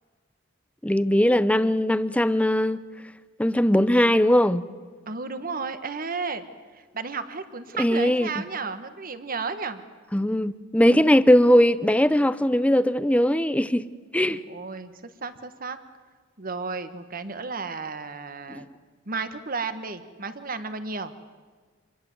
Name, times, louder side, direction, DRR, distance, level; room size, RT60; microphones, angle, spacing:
voice 1, 0.8-2.8 3.4-4.6 7.8-8.3 10.1-13.9 14.1-14.4 18.5-18.6, equal, 5° left, 0.7 m, -20 dB
voice 2, 5.1-6.4 6.7-9.8 14.3-14.9 15.2-15.8 16.4-18.7 19.1-21.1, right 4 dB, 45° right, 1.5 m, -33 dB
26.5 x 20.5 x 7.9 m
head